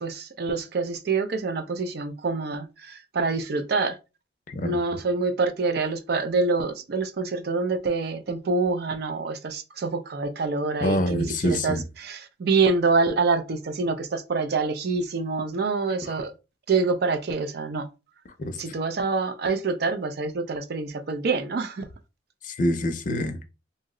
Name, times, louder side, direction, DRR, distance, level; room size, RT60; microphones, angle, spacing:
voice 1, 0.0-4.0 4.6-16.3 16.7-17.9 18.6-21.9, right 4 dB, 55° right, 0.4 m, -26 dB
voice 2, 10.8-11.8 16.0-16.1 18.4-18.6 22.4-23.4, equal, 45° left, 0.5 m, -26 dB
2.7 x 2.0 x 3.7 m
head